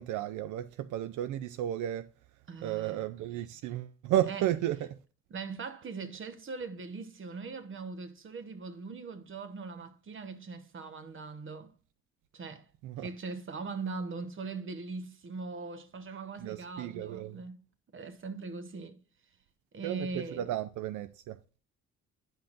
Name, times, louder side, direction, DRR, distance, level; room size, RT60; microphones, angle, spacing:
voice 1, 0.0-2.1 2.6-5.0 12.8-13.1 16.4-17.4 19.8-21.4, right 12 dB, 80° right, 0.5 m, -33 dB
voice 2, 2.5-3.0 4.3-4.5 5.3-11.7 12.3-12.7 13.0-17.6 17.9-19.0 19.7-20.5, right 4 dB, 40° right, 1.1 m, -40 dB
10.5 x 5.6 x 2.5 m
cardioid pair, 90°, 30 cm